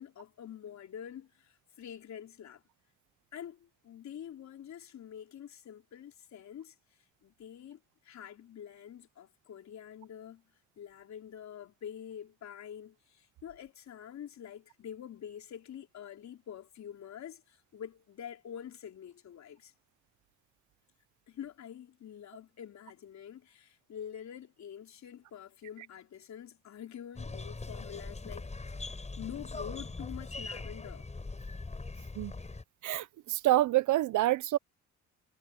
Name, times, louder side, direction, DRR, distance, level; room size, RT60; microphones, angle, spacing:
voice 1, 0.0-2.6 3.3-6.7 7.2-7.8 8.0-10.4 10.8-19.7 21.3-28.5 29.2-31.0, left 9 dB, 65° left, 4.0 m, -46 dB
sound 1, 27.2-32.6, left 3 dB, 20° left, 8.0 m, -41 dB
voice 2, 32.8-34.6, right 15 dB, 80° right, 0.8 m, -27 dB
cardioid pair, 90°, 30 cm